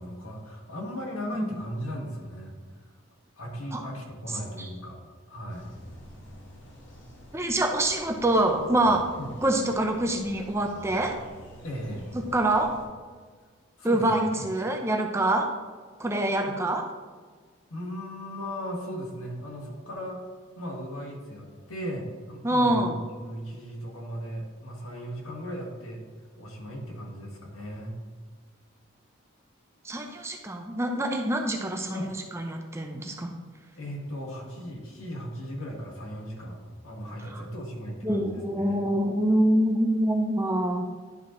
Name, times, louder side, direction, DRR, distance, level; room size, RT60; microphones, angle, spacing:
voice 1, 0.0-2.9 3.4-5.0 5.3-5.7 9.2-9.3 11.6-12.1 13.8-14.0 16.5-16.6 17.7-20.3 20.6-26.0 26.4-27.9 31.9-32.1 33.8-38.9, equal, 85° left, 0 dB, 1.7 m, -37 dB
sound 1, 5.5-12.9, equal, 55° left, 1.4 m, -47 dB
voice 2, 7.3-9.1 9.4-11.2 12.3-12.8 13.8-15.5 16.0-16.9 22.4-23.0 29.8-32.1 32.3-33.3 37.3-37.4 38.0-40.9, right 1 dB, 15° right, 3 dB, 0.5 m, -25 dB
11.0 x 5.0 x 3.1 m, 1.5 s
head